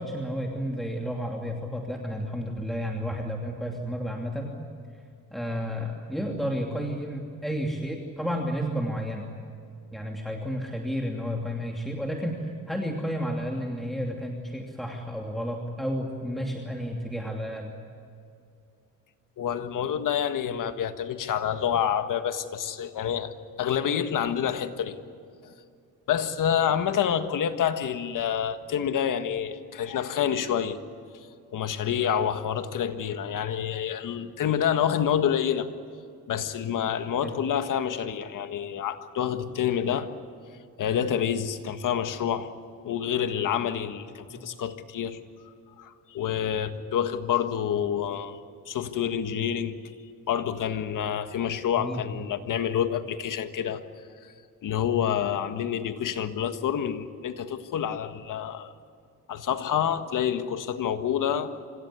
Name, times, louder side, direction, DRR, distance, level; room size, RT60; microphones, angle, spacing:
voice 1, 0.0-4.5 5.3-9.3 9.9-17.7 37.2-37.3 44.3-44.4 51.7-52.1, equal, ahead, 1 dB, 2.8 m, -31 dB
voice 2, 19.4-23.3 23.6-25.0 25.4-25.5 26.1-30.8 31.5-35.7 36.3-40.1 40.8-42.5 42.8-45.2 45.8-48.4 48.7-49.8 50.3-53.8 54.6-58.7 59.3-61.6, left 9 dB, 65° left, 9 dB, 1.7 m, -28 dB
26.0 x 16.5 x 9.8 m, 2.5 s
cardioid pair, 85°, 34 cm